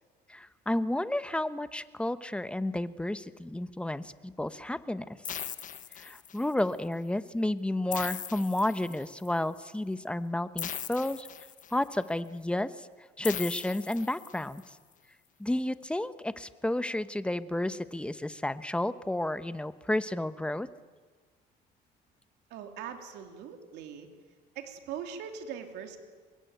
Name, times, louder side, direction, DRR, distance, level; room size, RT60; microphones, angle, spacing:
voice 1, 0.3-5.1 6.0-11.3 11.7-12.7 13.2-14.6 15.4-20.7, left 1 dB, 5° left, 13 dB, 1.1 m, -31 dB
sound 1, 5.2-6.6 7.9-9.3 10.6-11.9 13.2-14.6, left 9 dB, 50° left, 1.5 m, -39 dB
voice 2, 22.5-24.1 24.5-26.0, right 8 dB, 85° right, 5 dB, 3.3 m, -41 dB
25.0 x 22.0 x 9.3 m, 1.4 s
cardioid pair, 110°, 17 cm